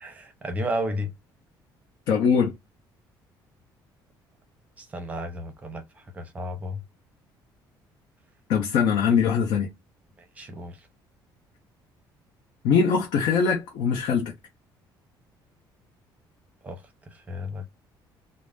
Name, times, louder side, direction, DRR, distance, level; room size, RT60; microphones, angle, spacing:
voice 1, 0.0-1.1 4.8-5.8 6.1-6.8 10.4-10.8 16.6-16.8 17.3-17.7, equal, 15° right, 0.6 m, -32 dB
voice 2, 2.1-2.6 8.5-9.7 12.6-14.3, left 6 dB, 75° left, 0.7 m, -22 dB
2.5 x 2.0 x 3.3 m
cardioid pair, 175°, 8 cm